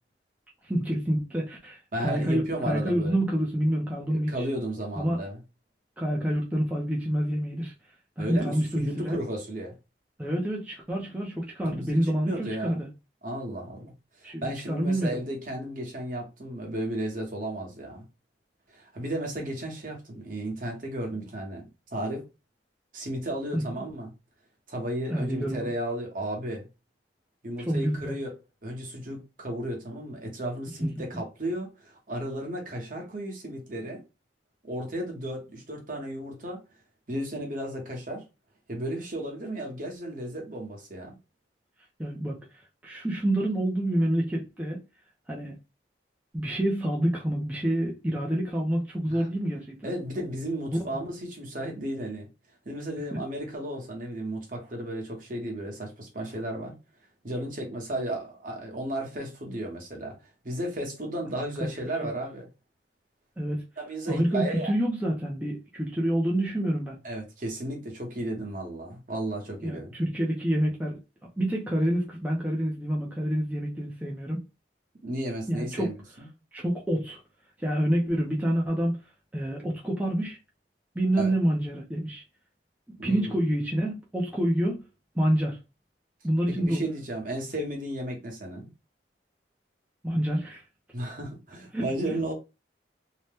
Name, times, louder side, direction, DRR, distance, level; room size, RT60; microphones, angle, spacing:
voice 1, 0.6-4.5 4.9-5.2 6.0-7.7 8.2-9.2 10.2-12.9 14.2-15.2 23.5-23.6 25.1-25.7 27.7-28.2 42.0-42.4 42.8-44.8 45.3-45.5 46.3-49.9 50.7-50.8 53.1-53.2 61.6-61.7 62.0-62.1 63.4-63.6 64.1-67.0 69.6-71.0 71.4-74.4 75.5-75.9 76.5-77.2 77.6-79.0 79.3-80.4 80.9-82.2 82.9-84.8 85.1-85.6 86.2-86.8 90.0-90.6 91.7-91.9, right 1 dB, 10° right, 0.5 m, -27 dB
voice 2, 1.9-3.2 4.1-5.4 8.2-9.7 11.6-12.9 13.2-13.9 14.2-18.0 18.7-22.2 22.9-24.1 24.7-26.7 27.4-28.3 28.6-34.0 34.6-36.6 37.1-38.2 38.7-41.1 49.1-49.3 49.8-52.3 52.6-56.7 57.2-60.2 60.4-62.5 63.8-64.7 67.0-69.9 75.0-76.3 81.1-81.3 83.0-83.4 86.6-88.7 90.9-92.3, right 1 dB, 50° right, 1.0 m, -34 dB
2.7 x 2.1 x 3.3 m
head